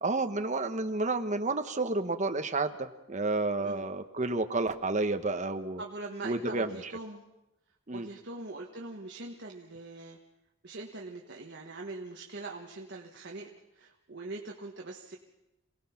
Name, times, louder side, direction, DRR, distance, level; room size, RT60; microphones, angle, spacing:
voice 1, 0.0-5.8 6.2-6.7 7.9-8.1, right 3 dB, 35° right, 7 dB, 1.1 m, -30 dB
voice 2, 5.8-7.2 7.9-10.2 10.6-13.5 13.7-15.2, right 2 dB, 55° right, 0 dB, 1.4 m, -42 dB
27.5 x 18.0 x 5.8 m, 0.97 s
head